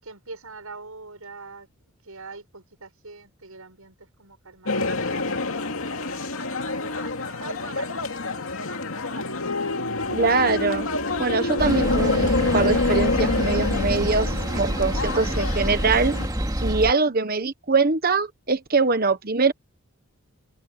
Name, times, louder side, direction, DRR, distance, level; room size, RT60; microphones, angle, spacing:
voice 1, 0.0-1.7 2.0-5.5 6.7-8.0 8.4-8.7, right 3 dB, 85° right, 6.8 m, -44 dB
sound 1, 4.7-16.3, left 2 dB, 70° left, 2.4 m, -27 dB
voice 2, 10.1-10.9 11.2-16.1 16.6-19.5, right 4 dB, 45° right, 1.2 m, -23 dB
sound 2, 11.6-16.9, right 1 dB, 15° right, 2.2 m, -27 dB
head